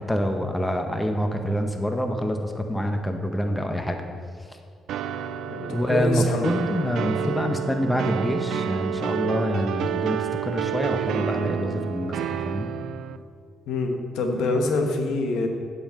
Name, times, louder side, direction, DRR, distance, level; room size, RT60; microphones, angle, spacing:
voice 1, 0.0-4.0 5.7-10.2 10.4-12.2 12.5-12.7, equal, 10° left, 5 dB, 1.0 m, -26 dB
sound 1, 4.9-13.2, right 8 dB, 80° right, 0.4 m, -29 dB
voice 2, 5.5-6.5 13.7-15.5, left 3 dB, 85° left, 3 dB, 1.2 m, -25 dB
8.6 x 5.6 x 7.6 m, 2.2 s
cardioid pair, 90°, 0 cm